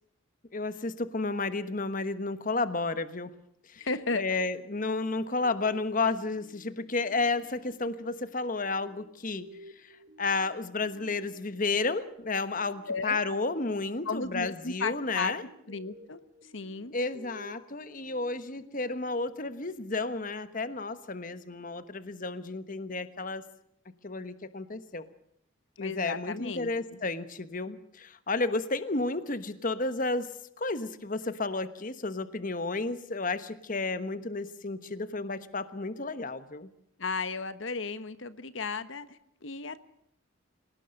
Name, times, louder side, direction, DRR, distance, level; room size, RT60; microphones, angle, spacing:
voice 1, 0.5-3.3 3.7-3.9 4.1-9.4 9.8-15.4 16.9-23.4 24.0-25.1 25.8-30.3 30.6-36.7, left 3 dB, 40° left, 12 dB, 1.2 m, -32 dB
voice 2, 3.8-4.2 12.9-13.2 14.0-15.3 15.7-16.9 25.8-26.7 37.0-39.8, left 4 dB, 70° left, 13 dB, 1.2 m, -34 dB
sound 1, 4.0-20.3, equal, 45° right, 4.5 m, -54 dB
27.0 x 18.0 x 6.5 m, 0.71 s
head